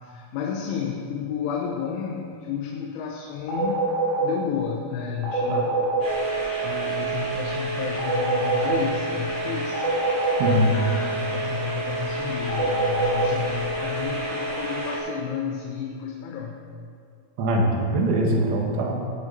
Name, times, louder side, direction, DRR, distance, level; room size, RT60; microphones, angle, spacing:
voice 1, 0.0-3.9 4.2-5.7 6.6-9.8 10.7-16.6, left 6 dB, 90° left, 0 dB, 3.5 m, -31 dB
sound 1, 3.5-4.2 5.2-6.0 8.0-8.7 9.7-10.5 12.5-13.2, right 3 dB, 70° left, 5.1 m, -24 dB
voice 2, 5.5-5.8 10.4-10.7 17.4-18.9, right 1 dB, 85° right, 0 dB, 4.1 m, -22 dB
sound 2, 6.0-15.0, right 2 dB, 35° right, 4.5 m, -29 dB
18.5 x 9.9 x 4.0 m, 2.3 s
omnidirectional pair, 5.4 m